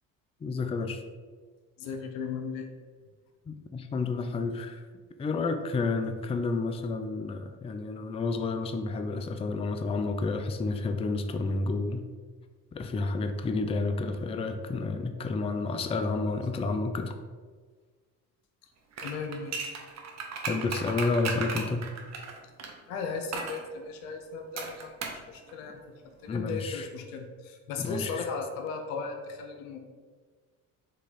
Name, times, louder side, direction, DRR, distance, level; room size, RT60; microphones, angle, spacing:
voice 1, 0.4-1.0 3.5-4.8 5.2-12.1 12.7-17.1 20.5-21.9 26.3-26.9 27.8-28.3, left 3 dB, 15° left, 7 dB, 0.4 m, -30 dB
voice 2, 1.8-2.7 19.0-19.7 22.9-24.9 25.3-25.8 26.2-29.8, left 5 dB, 85° left, 4 dB, 0.7 m, -36 dB
sound 1, 18.9-22.7 23.3-23.6 24.6-25.2 25.5-25.6, right 4 dB, 40° right, 0.9 m, -35 dB
4.0 x 3.0 x 4.1 m, 1.5 s
hypercardioid pair, 65°, 40 cm